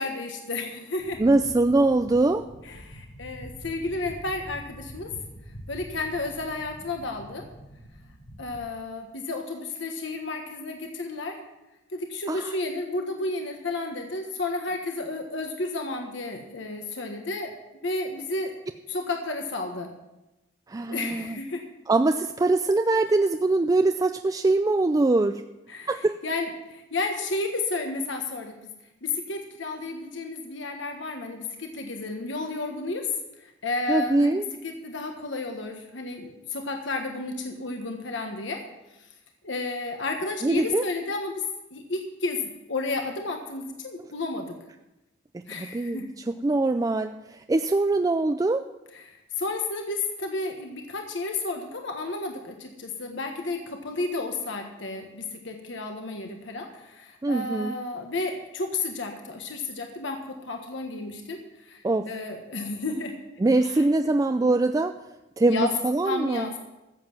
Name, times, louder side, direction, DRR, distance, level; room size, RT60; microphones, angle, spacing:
voice 1, 0.0-1.2 2.6-5.1 5.7-7.5 8.4-11.4 11.9-17.5 17.8-18.5 18.9-19.9 20.9-21.6 25.7-26.0 26.2-28.5 29.0-33.1 33.4-38.6 39.4-41.4 41.7-44.5 45.5-46.1 48.9-63.1 63.6-63.8 65.5-65.7 66.0-66.5, left 3 dB, 65° left, 3 dB, 1.4 m, -32 dB
sound 1, 1.0-8.6, equal, 85° left, 3.7 m, -45 dB
voice 2, 1.2-2.5 12.3-12.5 20.7-21.4 21.9-25.4 25.9-26.1 33.9-34.5 40.4-40.8 45.6-46.0 46.4-48.7 57.2-57.7 61.8-62.1 63.4-64.9 65.4-66.5, right 2 dB, 20° right, 7 dB, 0.3 m, -23 dB
14.5 x 7.6 x 6.0 m, 0.96 s
head